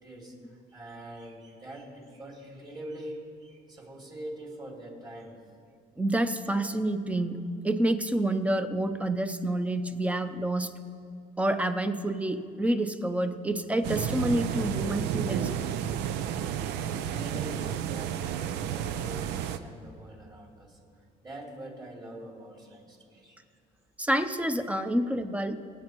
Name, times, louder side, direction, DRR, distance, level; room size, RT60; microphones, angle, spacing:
voice 1, 0.0-5.4 15.7-20.8 21.2-23.4, right 1 dB, 25° right, -1 dB, 2.6 m, -44 dB
voice 2, 6.0-7.4 7.6-10.7 11.4-15.8 24.0-25.6, right 1 dB, 10° right, 9 dB, 0.7 m, -28 dB
sound 1, 13.8-19.6, right 9 dB, 90° right, 0.5 m, -31 dB
26.0 x 8.8 x 3.1 m, 2.5 s
cardioid pair, 110°, 17 cm